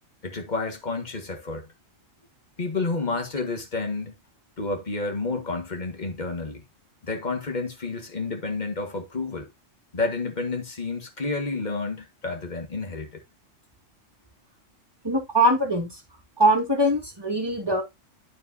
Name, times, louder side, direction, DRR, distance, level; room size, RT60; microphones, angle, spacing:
voice 1, 0.2-1.7 2.6-4.1 4.6-6.6 7.0-9.5 9.9-13.2, left 3 dB, 35° left, 1.8 m, -30 dB
voice 2, 15.0-15.9 16.4-17.8, right 1 dB, 20° right, 2.2 m, -22 dB
12.0 x 4.8 x 2.8 m
omnidirectional pair, 1.3 m